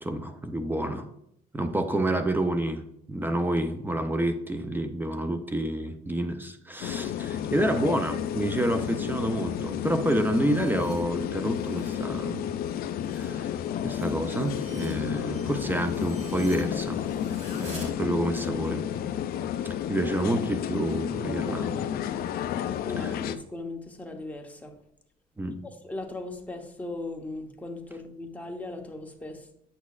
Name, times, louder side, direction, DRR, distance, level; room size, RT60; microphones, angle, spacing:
voice 1, 0.0-1.1 1.5-2.8 3.1-12.5 13.1-13.5 13.8-17.0 17.5-18.9 19.6-21.9 23.0-23.1 25.4-25.6, right 1 dB, 10° right, 8 dB, 0.5 m, -29 dB
sound 1, 6.8-23.4, left 9 dB, 65° left, 0.4 m, -31 dB
sound 2, 9.6-12.0 12.4-17.9, right 2 dB, 40° right, 2.3 m, -50 dB
voice 2, 22.8-24.7 25.6-29.5, left 2 dB, 10° left, 3 dB, 0.9 m, -38 dB
8.2 x 6.2 x 2.4 m, 0.75 s
cardioid pair, 110°, 17 cm